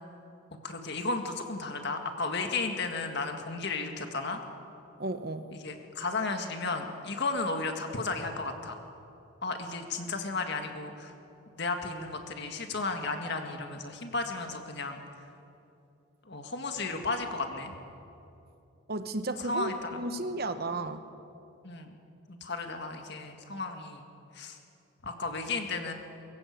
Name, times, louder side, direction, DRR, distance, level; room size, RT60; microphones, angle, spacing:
voice 1, 0.6-4.4 5.6-8.8 9.4-11.1 11.6-15.0 16.3-17.7 19.5-20.0 21.6-21.9 22.3-24.0 24.3-24.6 25.0-25.9, left 3 dB, 50° left, 5 dB, 1.9 m, -34 dB
voice 2, 5.0-5.5 18.9-21.0, right 2 dB, 45° right, 10 dB, 1.0 m, -34 dB
23.5 x 15.0 x 8.3 m, 2.7 s
head